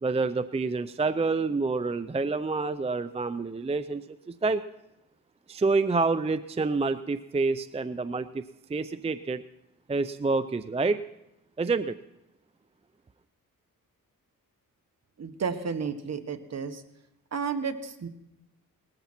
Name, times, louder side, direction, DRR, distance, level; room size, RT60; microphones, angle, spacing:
voice 1, 0.0-4.6 5.5-8.4 8.7-9.4 9.9-11.0 11.6-12.0, right 3 dB, 20° right, 12 dB, 0.5 m, -28 dB
voice 2, 15.2-16.8 17.3-18.1, right 5 dB, 50° right, 8 dB, 1.4 m, -32 dB
19.0 x 14.0 x 4.4 m, 0.87 s
cardioid pair, 95°, 34 cm